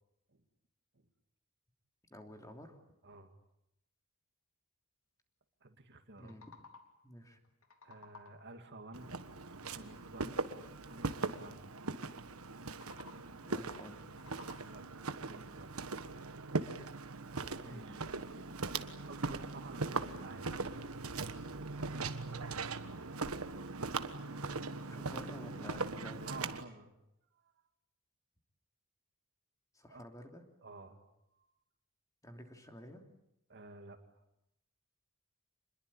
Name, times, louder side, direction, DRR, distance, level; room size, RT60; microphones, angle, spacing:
voice 1, 2.1-2.8 6.2-6.4 7.0-7.4 13.4-14.2 17.6-18.0 24.9-26.3 29.7-30.4 32.2-33.0, left 1 dB, 15° left, 4 dB, 2.9 m, -51 dB
voice 2, 3.0-3.3 5.6-6.3 7.8-9.1 9.4-10.4 10.8-11.7 14.6-15.8 17.6-18.1 19.1-20.6 21.8-22.2 26.2-26.9 27.3-27.5 29.9-30.0 30.6-31.1 31.4-31.5 33.5-34.0, right 2 dB, 55° right, 6 dB, 2.4 m, -52 dB
sound 1, 6.0-7.1 7.4-8.6 12.6-13.5 13.9-15.0, left 4 dB, 75° left, 3.0 m, -57 dB
Walk footsteps, 8.9-26.6, right 3 dB, 85° right, 1.4 m, -40 dB
27.5 x 21.5 x 8.7 m, 0.84 s
head